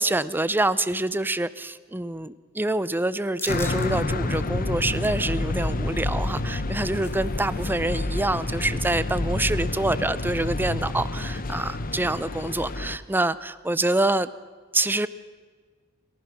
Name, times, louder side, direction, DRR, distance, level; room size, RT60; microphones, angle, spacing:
voice 1, 0.0-14.3 14.7-15.1, right 2 dB, 10° right, 15 dB, 0.6 m, -26 dB
sound 1, 3.4-3.9 4.3-4.4 4.8-5.2 6.5-7.7 8.0-8.1 8.4-8.7, left 2 dB, 10° left, 1.4 m, -41 dB
sound 2, 3.5-13.0, left 2 dB, 40° left, 0.9 m, -28 dB
29.5 x 15.0 x 6.0 m, 1.5 s
head